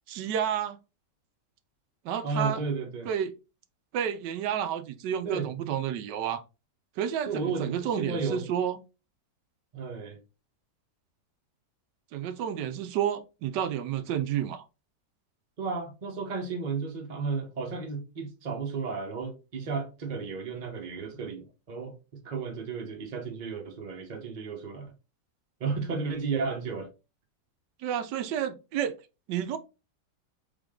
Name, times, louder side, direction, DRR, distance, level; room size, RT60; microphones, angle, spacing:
voice 1, 0.1-0.8 2.0-2.6 3.1-3.3 3.9-6.4 7.0-8.8 12.1-14.6 27.8-28.9 29.3-29.6, right 9 dB, 80° right, 1.2 m, -30 dB
voice 2, 2.2-3.1 5.2-5.5 7.2-8.4 9.7-10.2 15.6-24.9 25.6-26.9, right 4 dB, 35° right, 0.9 m, -33 dB
3.8 x 3.6 x 3.6 m
omnidirectional pair, 1.9 m